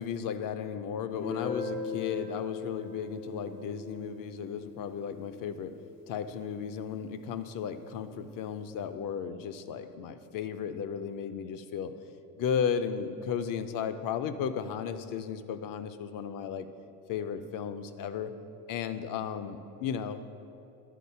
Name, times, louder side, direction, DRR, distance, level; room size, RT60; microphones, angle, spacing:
voice 1, 0.0-5.7 6.1-11.9 12.4-16.7 17.1-18.3 18.7-20.2, left 7 dB, 55° left, 10 dB, 0.6 m, -34 dB
Guitar, 1.1-6.6, left 4 dB, 85° left, 1.6 m, -40 dB
10.5 x 4.0 x 5.5 m, 2.6 s
cardioid pair, 110°, 39 cm